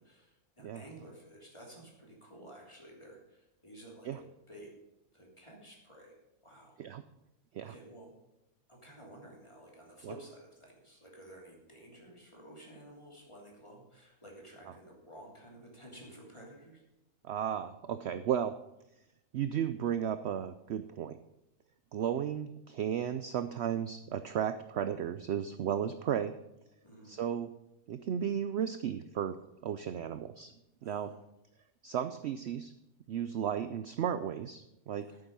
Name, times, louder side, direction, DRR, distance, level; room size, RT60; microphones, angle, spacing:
voice 1, 0.0-4.7 5.1-6.2 6.4-6.8 7.6-8.2 8.7-16.8 26.8-27.2 30.8-31.2 35.0-35.2, right 1 dB, 20° left, -2 dB, 3.0 m, -53 dB
voice 2, 17.2-18.5 19.3-21.2 21.9-26.3 27.0-27.5 27.9-30.5 30.8-31.1 31.8-32.7 33.1-35.1, right 9 dB, 65° right, 11 dB, 0.7 m, -34 dB
12.0 x 8.8 x 5.4 m, 0.89 s
omnidirectional pair, 1.5 m